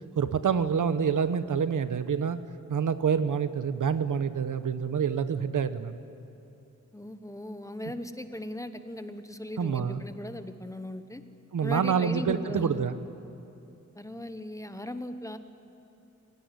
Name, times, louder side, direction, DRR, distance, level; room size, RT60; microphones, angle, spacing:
voice 1, 0.2-2.4 2.7-6.0 9.6-10.0 11.5-13.0, right 7 dB, 85° right, 12 dB, 1.1 m, -27 dB
voice 2, 6.9-11.2 11.6-12.8 13.9-15.4, left 1 dB, 10° left, 9 dB, 1.0 m, -38 dB
25.5 x 17.0 x 9.9 m, 2.8 s
wide cardioid pair, 160°, 30 cm